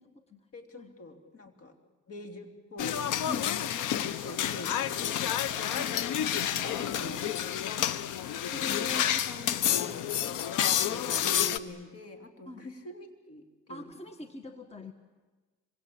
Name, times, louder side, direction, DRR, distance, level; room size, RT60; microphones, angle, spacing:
voice 1, 0.5-1.8 2.1-5.4 6.2-8.2 8.5-10.1 10.8-14.0, left 2 dB, 50° left, 6 dB, 3.5 m, -44 dB
sound 1, 2.8-11.6, left 10 dB, 85° left, 1.0 m, -29 dB
voice 2, 3.3-3.7 5.7-6.1 12.5-12.7 13.7-14.9, left 2 dB, 20° left, 8 dB, 1.7 m, -44 dB
26.0 x 23.5 x 8.8 m, 1.3 s
cardioid pair, 90°, 30 cm